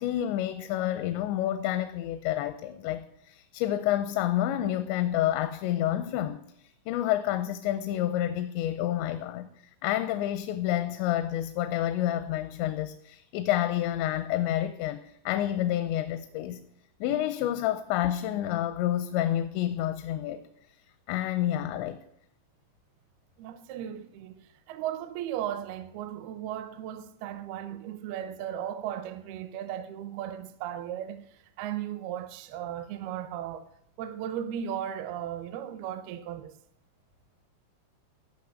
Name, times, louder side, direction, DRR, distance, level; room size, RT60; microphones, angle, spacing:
voice 1, 0.0-6.4 6.9-9.5 9.8-16.6 17.0-20.4 21.1-22.0, left 12 dB, 85° left, 3.0 m, -29 dB
voice 2, 23.4-31.2 31.6-33.7 34.0-36.6, right 10 dB, 75° right, 2.4 m, -36 dB
15.0 x 5.7 x 8.6 m
omnidirectional pair, 5.0 m